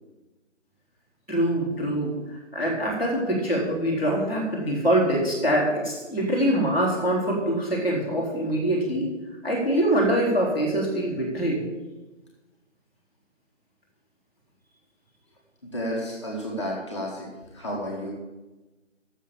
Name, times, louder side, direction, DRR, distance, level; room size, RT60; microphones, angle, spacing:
voice 1, 1.3-2.2 2.5-9.1 9.4-11.6, right 1 dB, 5° right, -15 dB, 1.9 m, -24 dB
voice 2, 15.6-17.3 17.5-18.1, equal, 25° left, -5 dB, 1.9 m, -31 dB
10.5 x 7.4 x 7.3 m, 1.1 s
figure-of-eight pair, 165°, 37 cm